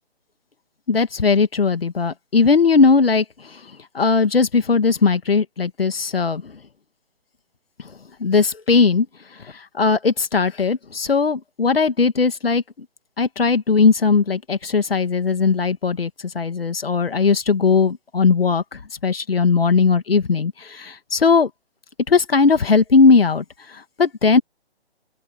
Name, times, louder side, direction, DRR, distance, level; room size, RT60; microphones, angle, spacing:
voice 1, 0.9-3.6 3.9-6.5 8.2-9.1 9.7-12.6 13.2-16.1 16.3-21.5 22.1-23.4 24.0-24.4, left 4 dB, 60° left, 2.4 m, -18 dB
open air
figure-of-eight pair, 145°, 32 cm